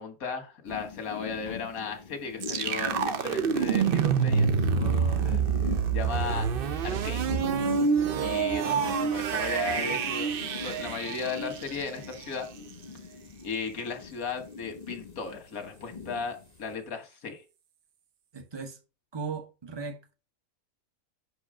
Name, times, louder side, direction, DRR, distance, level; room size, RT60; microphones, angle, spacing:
voice 1, 0.0-5.4 5.9-6.5 6.8-7.3 8.2-10.3 10.5-12.5 13.4-17.4, left 5 dB, 90° left, 1.8 m, -36 dB
sound 1, 0.7-16.8, left 5 dB, 45° left, 0.6 m, -42 dB
sound 2, 2.4-12.2, right 6 dB, 55° right, 0.6 m, -27 dB
voice 2, 18.3-18.8 19.1-20.1, right 5 dB, 20° right, 0.8 m, -37 dB
5.6 x 4.7 x 4.8 m
omnidirectional pair, 1.5 m